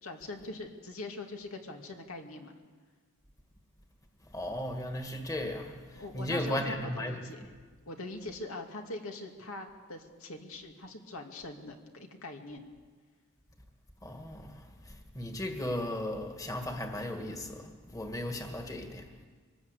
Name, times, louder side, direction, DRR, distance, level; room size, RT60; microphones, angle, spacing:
voice 1, 0.0-2.5 6.0-7.5 7.9-12.6, left 2 dB, 80° left, 2.4 m, -42 dB
voice 2, 4.3-7.2 14.0-19.1, left 1 dB, 15° left, 1.9 m, -36 dB
24.0 x 20.0 x 8.3 m
head